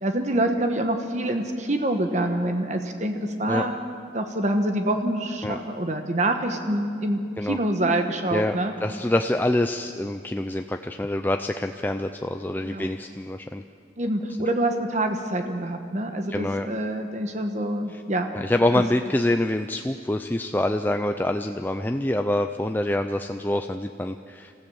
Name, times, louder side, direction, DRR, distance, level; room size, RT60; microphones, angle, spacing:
voice 1, 0.0-3.8 4.1-8.7 12.6-12.9 14.0-18.3, right 1 dB, 40° right, 6 dB, 1.2 m, -26 dB
voice 2, 8.8-13.6 16.3-16.7 17.9-18.0 18.3-24.5, left 1 dB, 10° left, 6 dB, 0.4 m, -26 dB
27.0 x 15.0 x 7.1 m, 2.3 s
head